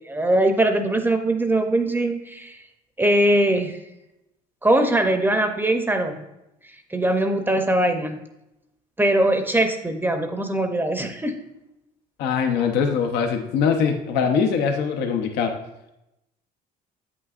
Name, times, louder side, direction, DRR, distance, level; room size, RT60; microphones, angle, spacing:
voice 1, 0.1-2.6 3.0-3.8 4.6-6.2 6.9-8.2 9.0-11.4, right 1 dB, 10° right, 5 dB, 0.5 m, -21 dB
voice 2, 12.2-15.5, left 6 dB, 85° left, 4 dB, 0.7 m, -22 dB
8.0 x 6.0 x 2.4 m, 0.89 s
cardioid pair, 110°, 17 cm